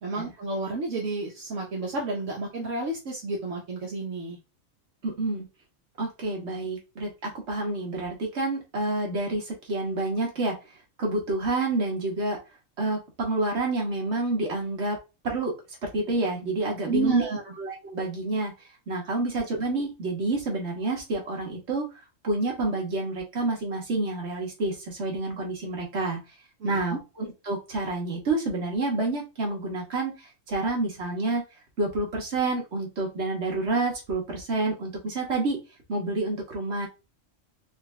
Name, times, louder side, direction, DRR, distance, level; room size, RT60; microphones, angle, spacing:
voice 1, 0.0-4.4 16.9-17.5 26.6-27.0, right 3 dB, 75° right, -2 dB, 1.3 m, -30 dB
voice 2, 5.0-5.5 6.0-10.6 11.0-12.4 12.8-15.0 15.2-15.5 15.8-17.3 17.6-18.5 18.9-21.8 22.2-26.2 26.6-31.4 31.8-35.6 35.9-36.9, right 2 dB, 60° right, 0 dB, 1.6 m, -28 dB
4.1 x 2.8 x 3.2 m, 0.28 s
omnidirectional pair, 1.3 m